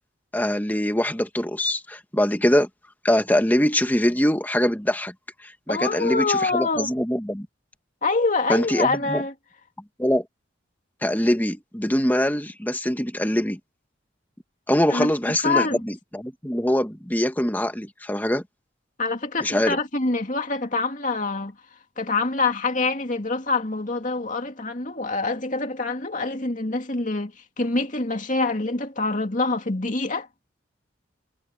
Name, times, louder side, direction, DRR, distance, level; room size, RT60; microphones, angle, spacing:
voice 1, 0.3-2.7 3.0-5.1 5.4-7.5 8.5-9.2 10.0-10.2 11.0-13.6 14.7-18.4 19.4-19.8, left 1 dB, 10° left, 1.8 m, -23 dB
voice 2, 5.7-6.9 8.0-9.3 14.9-15.1 15.4-15.8 19.0-21.6 22.0-30.3, left 3 dB, 40° left, 2.6 m, -25 dB
head